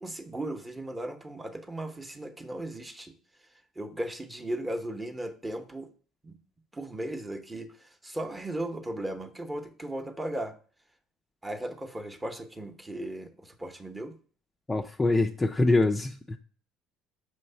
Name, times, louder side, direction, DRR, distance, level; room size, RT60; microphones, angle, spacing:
voice 1, 0.0-3.1 3.8-5.9 6.2-6.3 6.7-10.5 11.4-14.2, right 1 dB, 15° right, 7 dB, 0.7 m, -36 dB
voice 2, 14.7-16.4, left 2 dB, 15° left, 4 dB, 0.4 m, -24 dB
5.5 x 3.1 x 5.5 m, 0.42 s
supercardioid pair, 110°, 0 cm